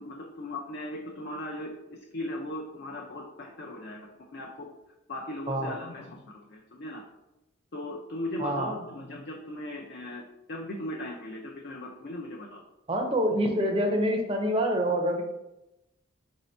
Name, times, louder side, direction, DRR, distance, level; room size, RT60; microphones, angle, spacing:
voice 1, 0.0-4.7 5.1-7.0 7.7-12.6, left 1 dB, 55° left, -1 dB, 0.5 m, -38 dB
voice 2, 8.4-8.7 12.9-15.2, equal, 25° right, 3 dB, 0.5 m, -26 dB
4.0 x 2.7 x 4.2 m, 0.95 s
head